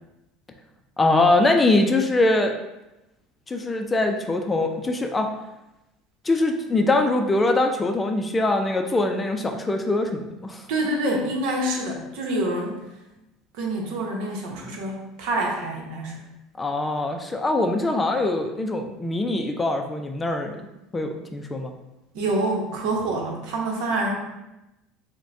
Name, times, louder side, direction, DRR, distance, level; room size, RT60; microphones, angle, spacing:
voice 1, 1.0-2.5 3.5-5.3 6.3-10.6 16.6-20.6 20.9-21.7, left 2 dB, 15° left, 4 dB, 0.4 m, -22 dB
voice 2, 10.7-12.8 13.5-16.3 22.1-24.2, right 1 dB, 75° right, 1 dB, 0.9 m, -26 dB
6.1 x 2.2 x 2.6 m, 0.94 s
supercardioid pair, 110°, 0 cm